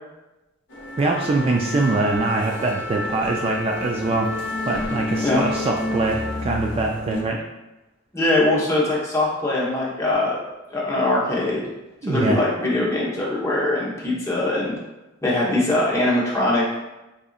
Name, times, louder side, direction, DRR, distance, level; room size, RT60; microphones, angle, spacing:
sound 1, 0.7-7.2, left 2 dB, 70° left, 0.7 m, -29 dB
voice 1, 1.0-4.3 4.7-7.4 12.0-12.4, right 3 dB, 30° right, 0 dB, 0.3 m, -23 dB
voice 2, 8.1-10.4 10.7-11.6 12.1-14.8 15.2-16.6, left 2 dB, 15° left, -6 dB, 1.0 m, -22 dB
4.8 x 2.7 x 2.4 m, 1.0 s
head